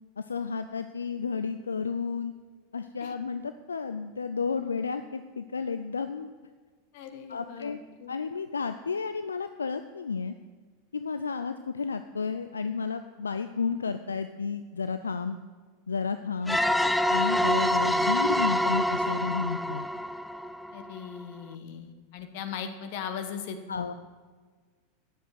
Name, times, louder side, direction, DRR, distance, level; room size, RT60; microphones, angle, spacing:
voice 1, 0.2-2.3 2.7-6.3 7.3-7.8 8.1-10.3 10.9-15.4 15.9-16.6 17.1-19.9 23.7-23.9, left 5 dB, 80° left, 10 dB, 0.4 m, -32 dB
voice 2, 6.9-8.2 20.7-23.9, left 7 dB, 55° left, 7 dB, 1.1 m, -39 dB
sound 1, 16.5-21.0, equal, 5° left, 0.5 m, -26 dB
10.0 x 7.5 x 6.4 m, 1.5 s
figure-of-eight pair, 85°, 0 cm